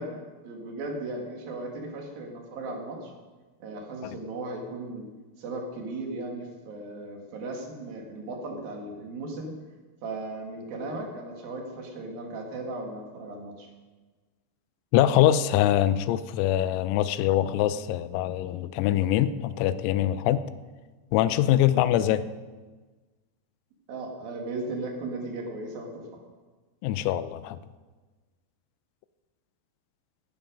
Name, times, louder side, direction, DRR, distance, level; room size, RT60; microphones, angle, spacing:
voice 1, 0.0-3.1 3.6-5.1 5.4-9.5 10.0-13.7 21.4-21.5 23.9-26.0, right 2 dB, 55° right, 1 dB, 3.0 m, -36 dB
voice 2, 14.9-20.4 21.1-22.2 26.8-27.6, left 12 dB, 90° left, 14 dB, 3.4 m, -23 dB
15.5 x 11.0 x 5.2 m, 1.3 s
omnidirectional pair, 5.9 m